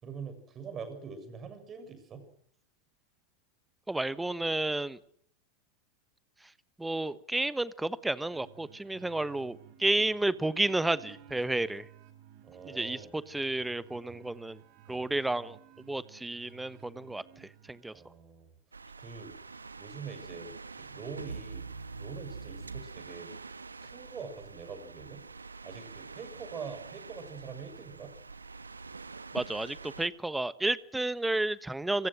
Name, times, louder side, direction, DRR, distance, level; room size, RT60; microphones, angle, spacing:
voice 1, 0.0-2.2 12.4-13.1 14.9-15.0 17.9-18.5 19.0-19.4 19.8-20.5 20.8-21.7 22.0-23.3 23.8-25.2 25.6-28.1, right 5 dB, 25° right, 10 dB, 7.1 m, -44 dB
voice 2, 3.9-5.0 6.8-11.9 12.7-14.6 14.9-15.6 15.9-17.9 29.3-32.1, right 2 dB, 5° right, 18 dB, 1.2 m, -31 dB
sound 1, 8.3-18.1, right 10 dB, 45° right, 4.6 m, -55 dB
sound 2, 18.7-30.1, right 4 dB, 75° right, 1.4 m, -45 dB
27.0 x 25.5 x 6.4 m, 0.66 s
figure-of-eight pair, 90°, 0 cm